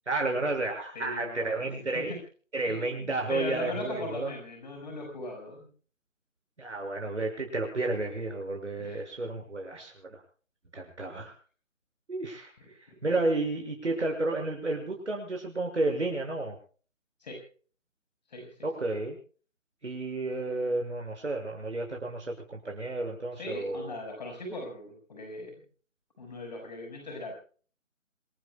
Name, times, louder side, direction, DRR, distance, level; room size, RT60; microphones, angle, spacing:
voice 1, 0.1-2.1 2.5-4.3 6.6-10.2 10.7-11.3 12.1-12.5 13.0-16.6 18.6-19.2 19.8-23.9, right 2 dB, 60° right, 1 dB, 6.7 m, -31 dB
voice 2, 0.9-2.2 2.6-5.7 8.8-9.1 11.1-11.3 12.6-13.0 17.2-17.4 18.3-18.7 23.3-25.6 26.2-27.3, left 2 dB, 35° left, 2 dB, 5.7 m, -39 dB
27.5 x 17.0 x 2.4 m, 0.42 s
figure-of-eight pair, 155°, 40 cm